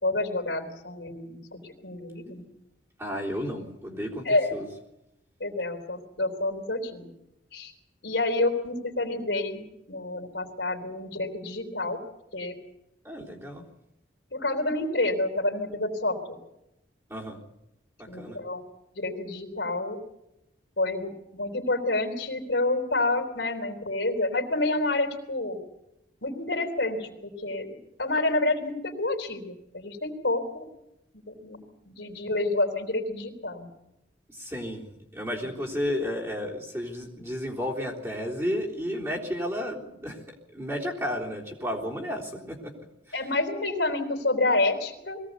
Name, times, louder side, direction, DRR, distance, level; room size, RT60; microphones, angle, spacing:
voice 1, 0.0-2.5 4.2-4.5 5.4-7.1 7.5-7.7 8.0-12.0 12.3-12.5 14.3-16.4 18.1-18.6 18.9-20.0 20.8-25.6 26.2-27.1 27.4-27.7 28.0-30.7 31.3-33.7 43.1-45.2, left 2 dB, 75° left, 4 dB, 3.7 m, -28 dB
voice 2, 3.0-4.7 13.0-13.7 17.1-17.4 18.0-18.4 34.3-40.2 40.5-42.7 43.1-43.2, equal, 15° right, -2 dB, 3.7 m, -32 dB
22.0 x 17.5 x 8.2 m, 0.89 s
head